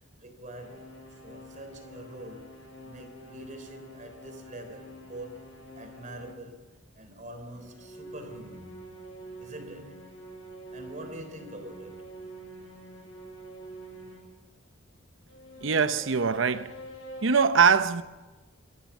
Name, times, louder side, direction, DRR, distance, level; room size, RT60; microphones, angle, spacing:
voice 1, 0.2-2.5 2.8-6.6 6.9-8.8 9.4-10.1 10.7-12.0, right 1 dB, 40° right, 3.7 m, -44 dB
sound 1, 0.5-6.5 7.4-14.4 15.3-17.5, right 1 dB, 75° left, 6.8 m, -46 dB
voice 2, 15.6-16.7 17.2-18.0, right 6 dB, 65° right, 0.8 m, -22 dB
27.0 x 13.5 x 7.2 m
head